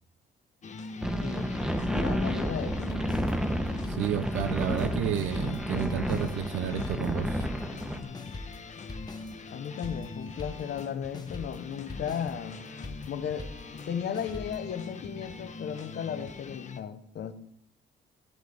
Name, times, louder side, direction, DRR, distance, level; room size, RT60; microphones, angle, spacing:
sound 1, 0.6-16.8, left 4 dB, 35° left, 1.0 m, -43 dB
sound 2, 1.0-8.0, equal, 5° right, 1.1 m, -31 dB
voice 1, 1.2-3.3 9.5-12.6 13.1-13.5 13.9-17.3, left 8 dB, 60° left, 1.1 m, -35 dB
sound 3, 2.9-4.9 5.1-10.9 11.1-14.6, left 2 dB, 20° left, 1.2 m, -43 dB
voice 2, 3.9-7.5, right 10 dB, 85° right, 0.7 m, -31 dB
11.5 x 10.5 x 3.5 m
cardioid pair, 90°, 20 cm